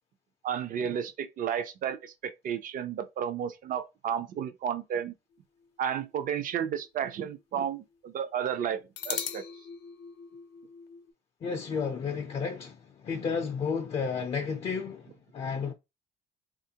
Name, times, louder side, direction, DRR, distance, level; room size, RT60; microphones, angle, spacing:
voice 1, 0.4-5.1 5.8-8.8 9.0-9.4, right 8 dB, 55° right, 0.5 m, -32 dB
sound 1, 5.6-7.3 7.6-7.7 9.0-11.1, left 9 dB, 85° left, 0.5 m, -40 dB
voice 2, 11.4-12.8 13.0-15.7, left 5 dB, 35° left, 0.5 m, -32 dB
3.4 x 2.4 x 2.8 m
cardioid pair, 110°, 17 cm